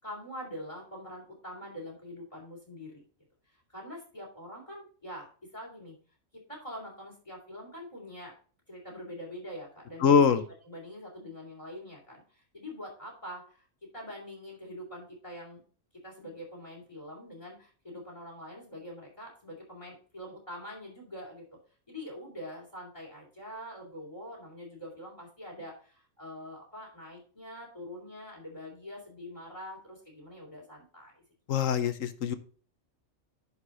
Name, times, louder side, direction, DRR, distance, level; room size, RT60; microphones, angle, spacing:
voice 1, 0.0-3.0 3.5-5.9 6.3-8.3 8.7-13.7 13.9-15.6 16.0-21.5 21.9-31.1, equal, 25° left, -1 dB, 3.3 m, -44 dB
voice 2, 10.0-10.4 31.5-32.3, left 6 dB, 80° left, 11 dB, 1.3 m, -23 dB
11.0 x 4.9 x 3.9 m, 0.41 s
omnidirectional pair, 1.4 m